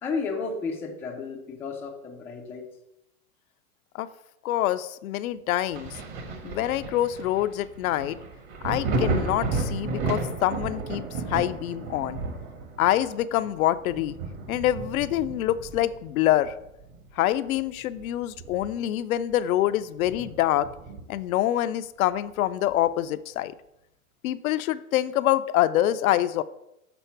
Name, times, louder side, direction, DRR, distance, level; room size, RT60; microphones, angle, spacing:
voice 1, 0.0-2.7, left 4 dB, 5° left, 0 dB, 0.3 m, -32 dB
voice 2, 4.4-6.0 6.4-8.2 8.6-12.2 12.8-14.2 14.5-16.5 17.2-20.7 21.1-23.5 24.2-26.4, left 13 dB, 75° left, 13 dB, 0.5 m, -25 dB
Thunder, 5.7-17.1 17.5-19.0 19.3-19.4 20.0-21.3 22.7-22.8, right 3 dB, 45° right, 1.5 m, -33 dB
7.0 x 4.2 x 4.5 m, 0.85 s
hypercardioid pair, 120°, 43 cm